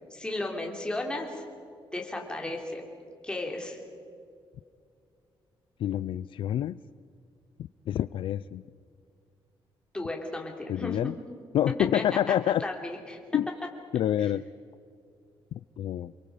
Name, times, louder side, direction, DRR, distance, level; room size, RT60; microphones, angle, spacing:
voice 1, 0.1-1.4 1.9-2.9 3.2-3.8 9.9-11.0 11.9-12.3 12.6-13.2 14.2-14.3, left 2 dB, 10° left, 1 dB, 3.6 m, -34 dB
voice 2, 5.8-6.8 7.9-8.6 10.7-11.1 11.5-12.6 13.3-13.5 13.9-14.4 15.8-16.1, left 11 dB, 65° left, 16 dB, 0.4 m, -27 dB
29.5 x 22.0 x 5.1 m, 2.3 s
cardioid pair, 155°, 9 cm